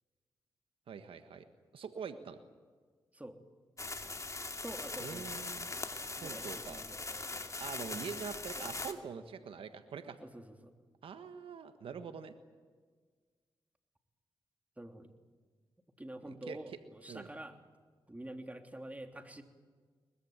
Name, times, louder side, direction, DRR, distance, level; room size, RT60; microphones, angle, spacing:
voice 1, 0.9-1.4 1.7-2.4 5.0-5.7 6.2-6.8 7.6-10.2 11.0-12.3 16.2-16.6 17.1-17.3, right 6 dB, 80° right, 9 dB, 1.5 m, -44 dB
sound 1, 3.8-8.9, left 3 dB, 35° left, 2.6 m, -41 dB
voice 2, 4.6-5.4 5.7-5.9 6.2-7.6 10.2-10.7 14.8-15.2 16.0-17.6 18.1-19.4, right 1 dB, 15° right, 5 dB, 3.2 m, -47 dB
23.0 x 20.5 x 8.9 m, 1.5 s
cardioid pair, 50°, 9 cm